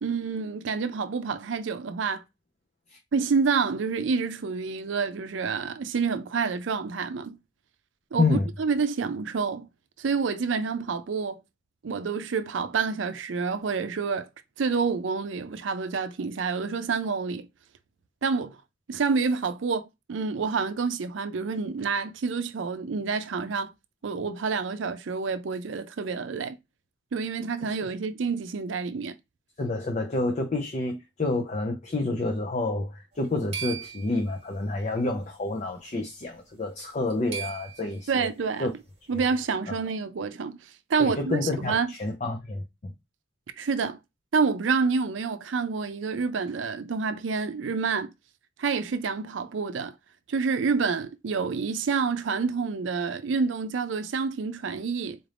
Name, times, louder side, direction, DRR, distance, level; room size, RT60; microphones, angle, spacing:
voice 1, 0.0-2.2 3.1-7.4 8.1-9.7 10.0-11.4 11.8-14.3 14.6-17.5 18.2-18.6 18.9-23.7 24.0-26.6 27.1-29.1 38.1-38.8 39.1-40.6 40.9-41.9 43.6-44.0 44.3-48.1 48.6-49.9 50.3-55.2, right 5 dB, 80° right, 0.5 m, -28 dB
voice 2, 8.2-8.5 29.6-38.3 38.6-38.7 39.1-39.2 39.7-39.8 41.0-42.9, left 2 dB, 35° left, 0.5 m, -29 dB
sound 1, 33.1-34.8 35.8-36.0 36.3-36.4 36.9-38.1, right 7 dB, 35° right, 1.0 m, -38 dB
4.0 x 2.5 x 3.3 m
head